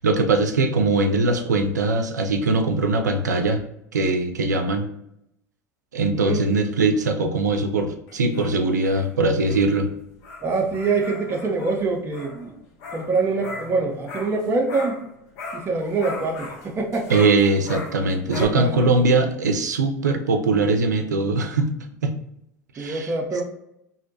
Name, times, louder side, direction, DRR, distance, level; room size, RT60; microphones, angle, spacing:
voice 1, 0.0-3.6 3.9-4.9 5.9-9.9 17.1-21.7 22.0-22.1 22.7-23.1, right 3 dB, 85° right, 5 dB, 0.4 m, -21 dB
voice 2, 6.1-6.4 10.4-12.5 12.9-15.0 15.5-17.1 18.3-18.9 22.8-23.4, right 3 dB, 25° right, 1 dB, 0.5 m, -25 dB
sound 1, 8.1-15.1 15.4-18.5, left 3 dB, 60° left, 0.6 m, -38 dB
2.6 x 2.1 x 2.6 m, 0.79 s
hypercardioid pair, 75°, 9 cm